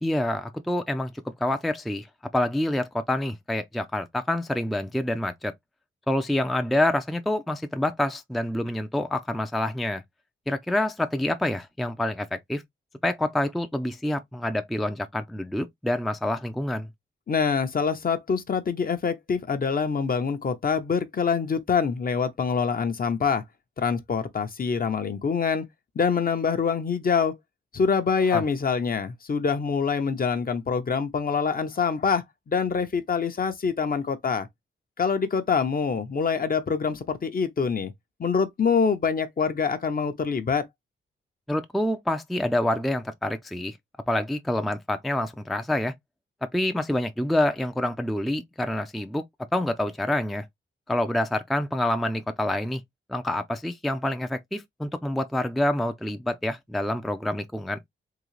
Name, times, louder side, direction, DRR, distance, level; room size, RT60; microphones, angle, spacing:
voice 1, 0.0-1.1 1.4-2.1 2.3-5.5 6.1-10.0 10.5-12.6 13.0-16.9 28.3-28.5 41.5-43.8 44.1-45.9 46.5-49.2 49.5-50.5 50.9-52.8 53.1-57.8, left 1 dB, ahead, 0.4 m, -27 dB
voice 2, 17.3-23.4 23.8-25.6 26.0-27.3 27.7-34.5 35.0-37.9 38.2-40.6, left 5 dB, 45° left, 0.7 m, -25 dB
3.8 x 2.7 x 3.1 m
wide cardioid pair, 120°, 21 cm